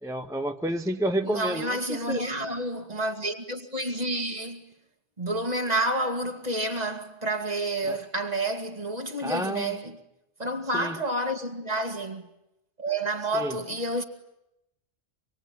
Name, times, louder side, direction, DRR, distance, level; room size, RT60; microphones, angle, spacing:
voice 1, 0.0-2.2 7.9-8.0 9.2-9.7 10.7-11.0 13.3-13.6, right 1 dB, 5° right, 1.0 m, -30 dB
voice 2, 1.2-4.7 5.2-10.0 10.4-12.2 12.8-14.0, right 1 dB, 35° right, 2.4 m, -29 dB
25.5 x 24.0 x 9.5 m
omnidirectional pair, 1.3 m